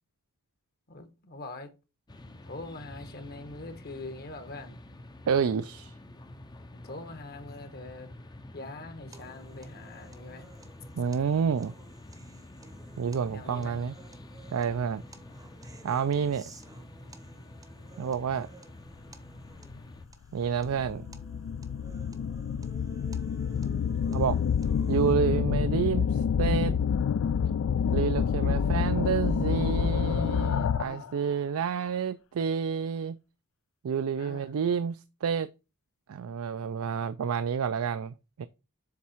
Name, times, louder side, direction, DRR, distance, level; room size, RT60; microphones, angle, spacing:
voice 1, 0.9-1.7 2.4-4.8 6.7-8.1 8.5-10.5 13.3-13.8 28.4-28.6 30.8-31.1 34.2-34.5, left 2 dB, 45° left, 1.1 m, -43 dB
sound 1, 2.1-20.0, left 1 dB, 20° left, 0.6 m, -48 dB
voice 2, 5.3-5.9 10.9-11.7 13.0-13.9 14.5-15.0 15.8-16.4 18.0-18.5 20.3-21.1 24.1-24.4 24.9-26.8 27.9-33.2 33.8-35.5 36.1-38.5, right 6 dB, 70° right, 0.4 m, -29 dB
sound 2, 9.1-25.1, right 2 dB, 15° right, 0.8 m, -54 dB
Scary Buildup, 19.7-19.8 20.4-31.1, left 7 dB, 60° left, 0.3 m, -28 dB
7.3 x 3.6 x 4.4 m
head